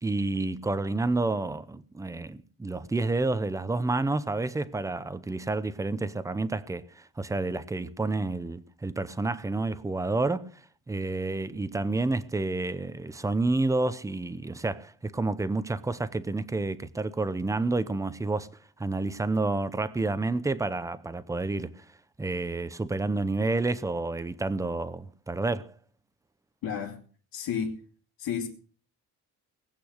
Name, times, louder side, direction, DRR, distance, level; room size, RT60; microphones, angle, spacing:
voice 1, 0.0-10.5 10.9-18.5 18.8-21.8 22.2-25.7, right 2 dB, 10° right, 0.6 m, -29 dB
voice 2, 26.6-27.0 27.3-27.8 28.2-28.5, left 7 dB, 75° left, 2.7 m, -31 dB
20.0 x 8.5 x 6.3 m
cardioid pair, 170°, 36 cm